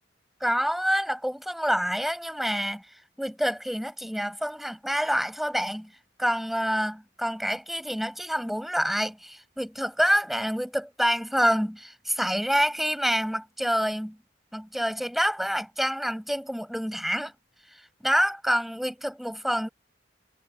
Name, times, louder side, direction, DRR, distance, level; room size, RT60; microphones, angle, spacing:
voice 1, 0.4-2.8 3.2-5.9 6.2-14.2 14.5-17.3 17.7-19.7, equal, ahead, 6.1 m, -27 dB
head